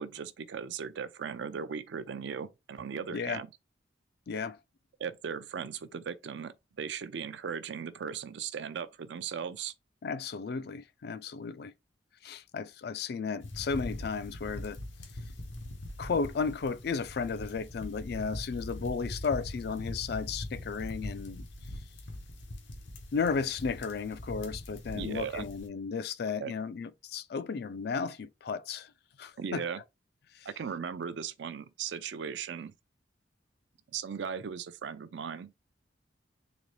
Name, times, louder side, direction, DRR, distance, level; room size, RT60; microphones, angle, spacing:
voice 1, 0.0-3.5 5.0-9.7 24.9-25.4 26.4-26.5 29.4-29.8 30.5-32.7 33.9-35.5, right 6 dB, 70° right, 0.4 m, -37 dB
voice 2, 3.1-3.4 4.3-4.6 10.0-11.7 12.2-14.8 16.0-21.5 23.1-28.9 29.2-29.6 30.3-30.5, left 5 dB, 55° left, 0.4 m, -34 dB
sound 1, 13.4-25.7, left 1 dB, 90° left, 1.0 m, -42 dB
4.1 x 2.9 x 3.1 m
head